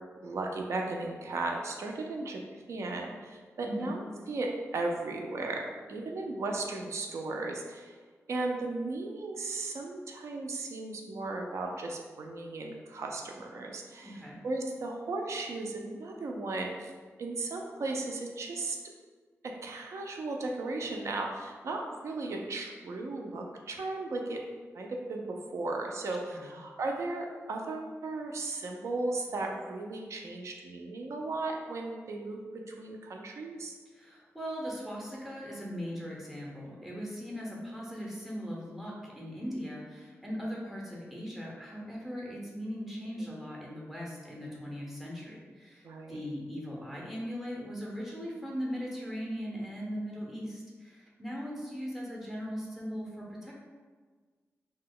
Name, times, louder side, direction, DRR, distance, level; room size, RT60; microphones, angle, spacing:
voice 1, 0.2-7.9 8.3-16.9 17.2-18.8 19.4-24.4 24.7-33.7 44.5-44.6 45.8-46.2, right 2 dB, 65° right, 1 dB, 0.4 m, -36 dB
voice 2, 3.6-4.0 14.0-14.4 26.1-26.6 33.9-53.5, equal, 5° right, -4 dB, 0.5 m, -39 dB
2.8 x 2.1 x 3.7 m, 1.5 s
wide cardioid pair, 175°, 5 cm